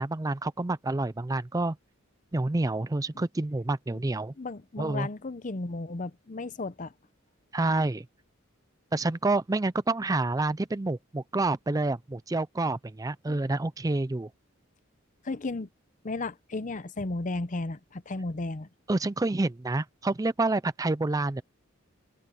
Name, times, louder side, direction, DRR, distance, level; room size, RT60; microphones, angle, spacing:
voice 1, 0.0-1.8 2.3-4.3 4.8-5.1 7.5-8.1 8.9-14.3 18.9-21.4, right 2 dB, 15° right, 0.4 m, -28 dB
voice 2, 4.4-6.9 13.3-13.4 15.2-15.7 16.0-18.7, left 2 dB, 40° left, 0.7 m, -34 dB
open air
head